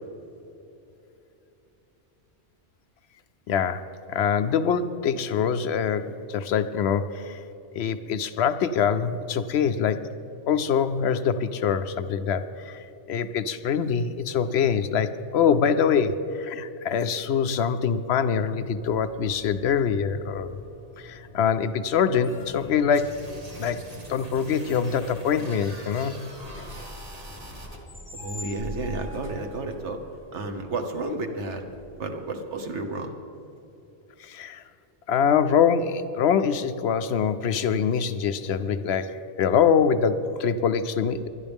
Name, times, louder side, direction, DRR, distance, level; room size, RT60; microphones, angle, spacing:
voice 1, 3.5-7.4 7.7-10.1 10.5-20.5 21.0-23.2 23.6-23.8 24.1-26.2 34.2-34.6 35.1-41.3, left 7 dB, 70° left, 11 dB, 0.8 m, -24 dB
sound 1, 18.7-32.3, left 1 dB, 10° left, 1.7 m, -45 dB
sound 2, 22.9-27.8, right 1 dB, 35° right, 1.5 m, -43 dB
voice 2, 28.1-30.0 30.3-31.6 32.0-33.1, right 2 dB, 75° right, 6 dB, 1.4 m, -31 dB
21.0 x 11.5 x 3.5 m, 3.0 s
omnidirectional pair, 1.2 m